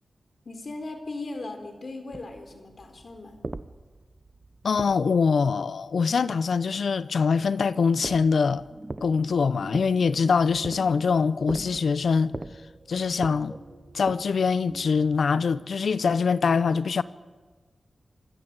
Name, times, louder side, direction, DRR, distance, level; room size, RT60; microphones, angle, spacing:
voice 1, 0.5-3.4, left 2 dB, 60° left, 3.8 m, -38 dB
sound 1, 2.1-5.5 7.9-14.6, right 2 dB, 40° right, 0.9 m, -41 dB
voice 2, 4.6-8.6 9.0-12.3 12.9-13.6 13.9-17.0, left 5 dB, 80° left, 0.7 m, -23 dB
sound 2, 7.9-16.2, right 1 dB, 15° right, 3.3 m, -47 dB
25.5 x 13.5 x 8.2 m
cardioid pair, 45°, 0 cm